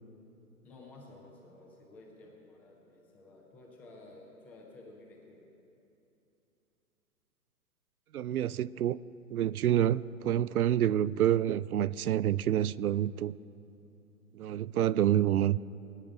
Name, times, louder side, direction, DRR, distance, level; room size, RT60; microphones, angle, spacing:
voice 1, 0.6-5.5, left 2 dB, 5° left, 0.4 m, -53 dB
voice 2, 8.1-9.0 9.3-13.3 14.3-15.6, right 11 dB, 75° right, 0.5 m, -28 dB
20.5 x 9.5 x 5.0 m
figure-of-eight pair, 120°, 44 cm